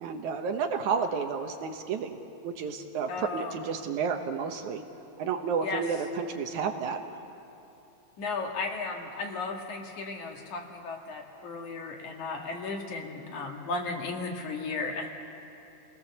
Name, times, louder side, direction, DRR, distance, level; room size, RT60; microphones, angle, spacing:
voice 1, 0.0-2.2 2.4-4.8 5.2-7.0, right 6 dB, 70° right, 5 dB, 2.3 m, -31 dB
voice 2, 3.1-3.5 5.6-5.8 8.2-15.1, left 3 dB, 65° left, 1 dB, 3.2 m, -35 dB
28.5 x 19.0 x 7.2 m, 2.8 s
omnidirectional pair, 3.8 m